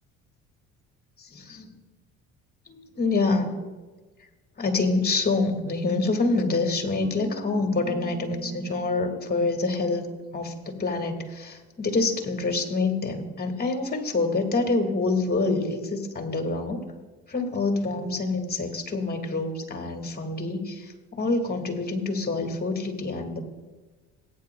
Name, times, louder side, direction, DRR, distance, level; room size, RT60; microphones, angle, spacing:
voice 1, 1.2-1.7 2.7-3.6 4.6-10.1 10.3-16.8 17.3-23.4, left 3 dB, 30° left, 5 dB, 1.8 m, -26 dB
sound 1, 6.3-11.0, right 1 dB, 50° right, 3.2 m, -44 dB
18.0 x 9.0 x 2.2 m, 1.3 s
supercardioid pair, 80°, 31 cm